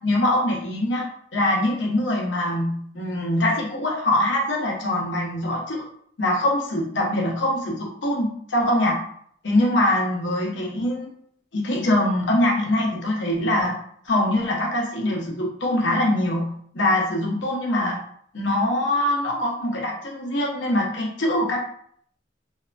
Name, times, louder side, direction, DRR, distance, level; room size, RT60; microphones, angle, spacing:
voice 1, 0.0-1.1 1.3-5.9 6.2-9.0 9.4-11.1 11.5-13.8 14.0-18.0 18.3-21.6, left 1 dB, 80° left, -2 dB, 0.8 m, -23 dB
2.7 x 2.2 x 2.5 m, 0.64 s
head